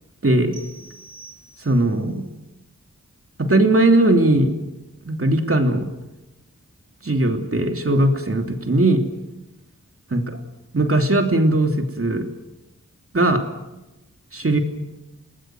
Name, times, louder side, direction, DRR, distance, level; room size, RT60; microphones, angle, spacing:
voice 1, 0.2-0.6 1.6-2.3 3.4-4.5 5.1-5.9 7.0-9.0 10.1-10.4 10.7-12.3 13.1-13.4 14.3-14.6, right 2 dB, 45° right, 5 dB, 3.1 m, -19 dB
sound 1, 0.5-2.1, right 3 dB, 15° right, 6.1 m, -45 dB
29.5 x 19.5 x 7.8 m, 0.97 s
wide cardioid pair, 90°, 31 cm